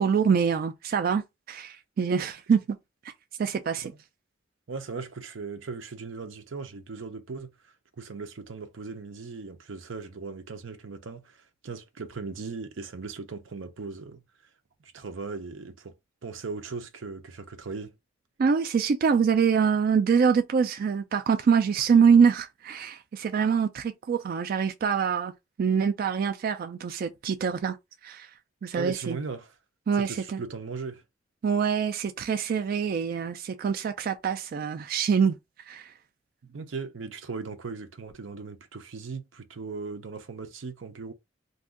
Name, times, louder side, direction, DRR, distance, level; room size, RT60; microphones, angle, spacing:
voice 1, 0.0-2.8 3.4-3.9 18.4-25.3 25.6-27.8 28.0-28.3 28.6-29.2 29.9-30.4 31.4-35.9, right 6 dB, 50° right, 0.3 m, -25 dB
voice 2, 4.7-14.2 14.8-15.9 16.2-17.9 28.8-29.5 29.9-31.0 36.4-41.1, right 4 dB, 90° right, 0.6 m, -38 dB
2.6 x 2.3 x 3.6 m
head